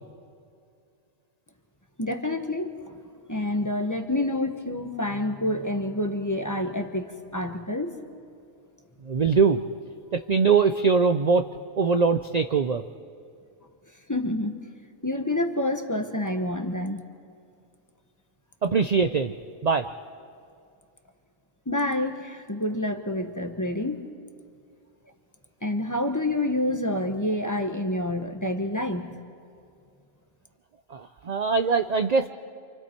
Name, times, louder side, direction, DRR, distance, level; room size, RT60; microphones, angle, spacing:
voice 1, 2.0-3.0 3.3-8.0 14.1-14.5 15.0-17.0 21.7-24.1 25.6-29.2, left 1 dB, 15° left, 5 dB, 1.0 m, -28 dB
voice 2, 9.0-9.6 10.1-11.5 11.8-12.8 18.6-19.3 19.6-19.9 30.9-32.3, right 5 dB, 50° right, 8 dB, 0.5 m, -22 dB
28.0 x 26.5 x 4.5 m, 2.4 s
omnidirectional pair, 1.4 m